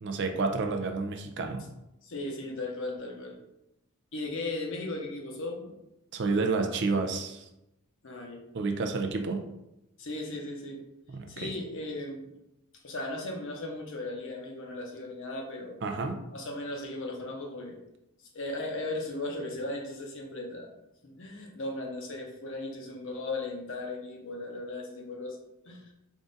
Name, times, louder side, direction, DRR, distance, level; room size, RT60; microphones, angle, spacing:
voice 1, 0.0-1.6 6.1-7.4 8.5-9.4 11.1-11.5 15.8-16.2, right 3 dB, 50° right, 5 dB, 0.5 m, -30 dB
voice 2, 2.0-3.4 4.1-5.7 8.0-8.6 10.0-10.8 11.3-12.3 12.8-15.8 16.3-17.8 18.3-20.7 21.0-25.4 25.6-25.9, left 2 dB, 60° left, 1 dB, 0.8 m, -37 dB
3.6 x 2.5 x 3.9 m, 0.88 s
head